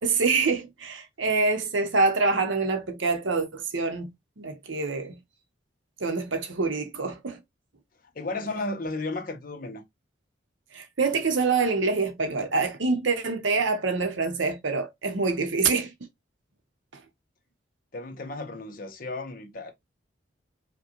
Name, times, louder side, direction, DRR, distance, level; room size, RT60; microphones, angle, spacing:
voice 1, 0.0-4.1 4.4-5.2 6.0-7.4 10.7-15.9, right 4 dB, 75° right, 0.8 m, -26 dB
voice 2, 8.1-9.8 17.9-19.7, left 2 dB, 45° left, 0.8 m, -34 dB
5.0 x 2.2 x 2.9 m
head